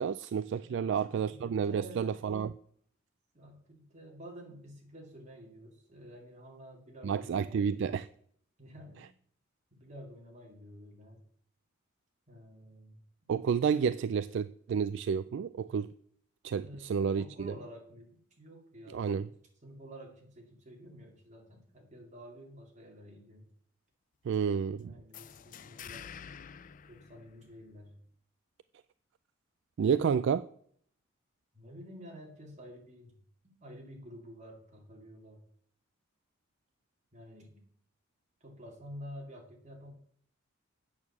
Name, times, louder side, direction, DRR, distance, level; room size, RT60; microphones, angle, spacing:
voice 1, 0.0-2.5 7.0-8.1 13.3-15.9 16.4-17.5 18.9-19.3 24.2-24.9 29.8-30.5, right 6 dB, 60° right, 15 dB, 0.3 m, -30 dB
voice 2, 0.6-2.3 3.3-7.9 8.6-9.1 9.7-11.2 12.3-13.0 16.6-19.3 19.6-23.5 24.6-26.1 26.9-28.0 31.5-33.1 33.6-35.4 37.1-37.6 38.4-39.9, equal, 35° right, 0 dB, 2.4 m, -50 dB
sound 1, 25.1-27.8, left 8 dB, 40° left, 0.4 m, -49 dB
8.7 x 6.3 x 7.1 m, 0.63 s
head